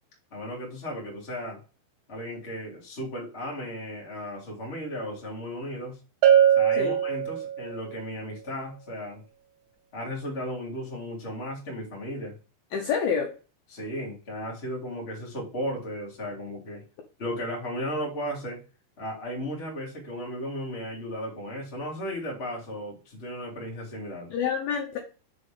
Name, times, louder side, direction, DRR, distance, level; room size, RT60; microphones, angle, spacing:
voice 1, 0.3-1.6 2.1-6.0 6.5-9.2 9.9-12.4 13.7-16.8 17.2-18.6 19.0-24.3, equal, 25° left, -2 dB, 1.4 m, -35 dB
Bell, 6.2-7.9, right 9 dB, 80° right, 1.9 m, -21 dB
voice 2, 12.7-13.3 24.3-25.0, left 6 dB, 80° left, 2 dB, 2.2 m, -27 dB
6.8 x 4.0 x 5.1 m, 0.34 s
omnidirectional pair, 5.6 m